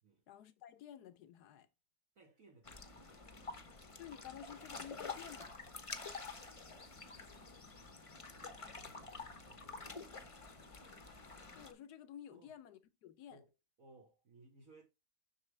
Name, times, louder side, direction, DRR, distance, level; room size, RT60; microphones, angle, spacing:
voice 1, 0.3-1.7 4.0-5.6 11.5-13.4, left 9 dB, 75° left, 1.3 m, -52 dB
voice 2, 2.2-3.1 8.3-10.0 12.3-12.5 13.3-13.5 13.8-14.8, right 2 dB, 55° right, 1.7 m, -63 dB
sound 1, 2.6-11.7, left 4 dB, 25° left, 0.8 m, -49 dB
7.3 x 6.4 x 3.3 m
omnidirectional pair, 1.7 m